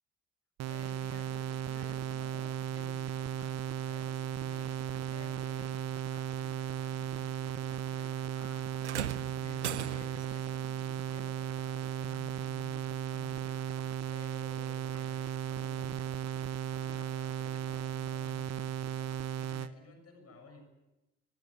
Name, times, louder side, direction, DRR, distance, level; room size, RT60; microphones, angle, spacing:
sound 1, 0.6-19.7, right 9 dB, 50° right, 1.0 m, -36 dB
voice 1, 0.7-8.7 9.0-13.8 14.1-16.0 16.7-20.6, left 3 dB, 45° left, 6 dB, 6.8 m, -55 dB
sound 2, 8.8-10.4 11.8-12.0 12.9-13.0, right 10 dB, 85° right, 0.8 m, -38 dB
23.5 x 22.0 x 8.7 m, 1.0 s
figure-of-eight pair, 45°, 34 cm